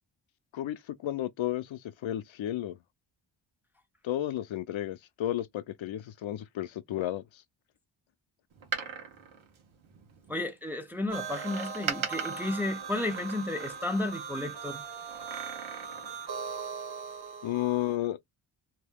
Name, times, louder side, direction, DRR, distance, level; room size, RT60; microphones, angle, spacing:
voice 1, 0.5-2.8 4.0-7.4 17.4-18.2, left 13 dB, 75° left, 0.5 m, -33 dB
Door, 8.5-10.3 11.3-14.1 15.1-16.2 16.5-16.6, right 7 dB, 80° right, 1.1 m, -39 dB
voice 2, 10.3-14.8, left 2 dB, 5° right, 0.4 m, -33 dB
sound 1, 11.1-18.0, right 5 dB, 55° right, 0.8 m, -40 dB
2.8 x 2.6 x 3.5 m
wide cardioid pair, 180°, 48 cm